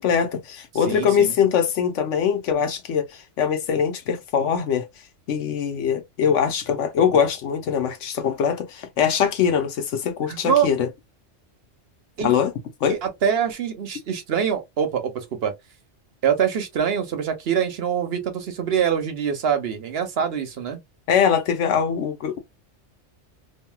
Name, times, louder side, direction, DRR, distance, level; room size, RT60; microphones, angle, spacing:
voice 1, 0.0-4.9 5.3-10.9 12.2-12.5 12.8-13.0 21.1-22.4, left 7 dB, 80° left, 1.0 m, -22 dB
voice 2, 0.8-1.3 10.3-10.7 12.2-12.3 12.9-15.5 16.2-20.8, right 8 dB, 60° right, 1.0 m, -24 dB
2.9 x 2.7 x 2.2 m
omnidirectional pair, 1.2 m